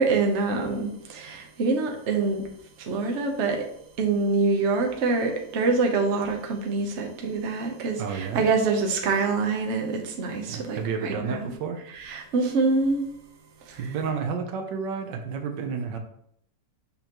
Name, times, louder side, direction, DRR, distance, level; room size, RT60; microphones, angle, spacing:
voice 1, 0.0-2.4 2.8-3.6 4.0-11.5 12.1-13.1 13.7-13.8, right 4 dB, 50° right, 2 dB, 1.1 m, -25 dB
voice 2, 8.0-8.5 10.5-11.8 13.8-16.0, right 5 dB, 75° right, 5 dB, 1.5 m, -31 dB
6.7 x 5.5 x 3.0 m, 0.69 s
omnidirectional pair, 1.9 m